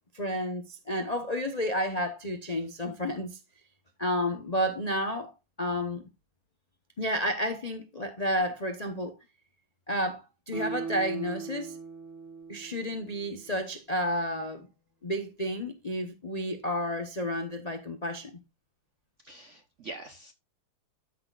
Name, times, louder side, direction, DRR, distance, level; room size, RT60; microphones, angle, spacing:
voice 1, 0.1-3.4 4.0-6.0 7.0-9.1 9.9-11.8 12.5-14.7 15.0-18.4, equal, 85° left, 0.3 m, -31 dB
Guitar, 10.5-13.8 14.1-14.2, right 5 dB, 35° right, 1.9 m, -40 dB
voice 2, 19.2-20.3, right 2 dB, 65° right, 0.7 m, -44 dB
13.5 x 6.2 x 2.4 m
omnidirectional pair, 2.4 m